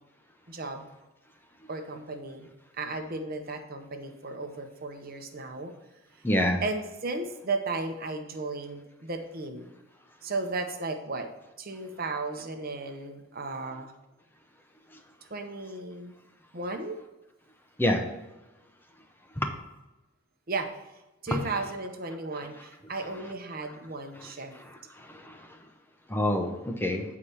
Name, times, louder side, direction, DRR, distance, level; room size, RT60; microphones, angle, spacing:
voice 1, 0.5-0.8 1.7-2.5 2.8-5.7 6.6-9.7 10.2-11.3 11.6-13.9 15.3-16.2 16.5-17.0 20.5-20.7 21.2-24.5, right 3 dB, 45° right, 5 dB, 0.9 m, -35 dB
voice 2, 6.2-6.6 17.8-18.0 19.4-19.5 21.3-21.4 25.1-25.4 26.1-27.0, left 1 dB, 10° left, 3 dB, 0.8 m, -26 dB
8.5 x 4.8 x 5.5 m, 1.0 s
head